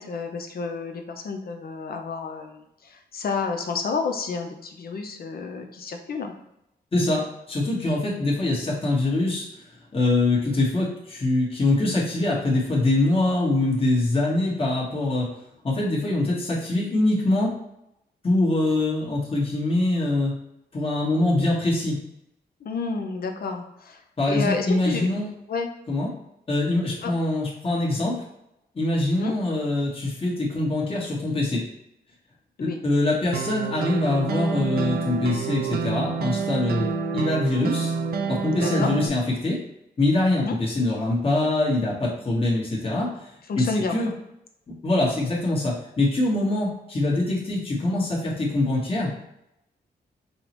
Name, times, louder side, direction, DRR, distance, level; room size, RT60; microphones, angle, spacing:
voice 1, 0.0-6.3 22.6-24.0 24.3-25.1 25.5-25.7 27.0-27.1 29.2-29.3 32.6-32.8 38.5-38.9 40.4-40.5 43.5-44.2, left 4 dB, 60° left, 4 dB, 0.6 m, -30 dB
voice 2, 6.9-9.4 9.9-15.3 15.6-17.6 18.2-20.3 20.7-22.0 24.2-25.3 25.9-26.1 26.5-28.2 28.7-31.6 32.6-36.9 37.1-37.9 38.3-39.6 40.0-43.3 43.6-44.1 44.7-49.2, left 2 dB, 30° left, -4 dB, 1.2 m, -24 dB
sound 1, 33.3-39.1, right 5 dB, 65° right, 0.4 m, -28 dB
5.5 x 2.0 x 2.9 m, 0.84 s
cardioid pair, 90°, 17 cm